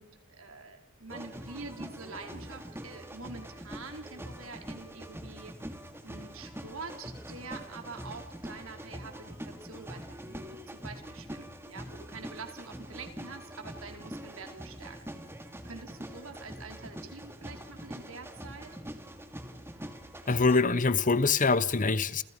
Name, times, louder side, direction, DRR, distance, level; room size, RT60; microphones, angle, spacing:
voice 1, 0.0-5.7 6.0-15.0 15.6-18.7, right 4 dB, 70° right, 4.3 m, -46 dB
sound 1, 1.1-20.6, equal, 10° right, 2.4 m, -44 dB
voice 2, 20.3-22.2, left 4 dB, 40° left, 1.0 m, -24 dB
29.0 x 28.5 x 5.3 m
head